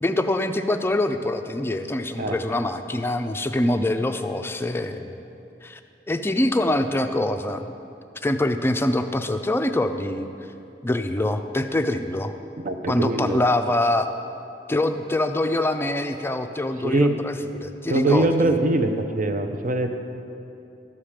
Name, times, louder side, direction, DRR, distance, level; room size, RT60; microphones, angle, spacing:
voice 1, 0.0-5.2 5.6-5.8 6.1-7.7 8.2-10.3 10.8-12.3 12.9-14.1 14.7-18.6, left 1 dB, 15° left, 7 dB, 0.4 m, -24 dB
voice 2, 12.6-13.4 16.8-17.2 17.9-19.9, right 2 dB, 50° right, 6 dB, 0.7 m, -22 dB
12.5 x 5.0 x 7.3 m, 2.7 s
head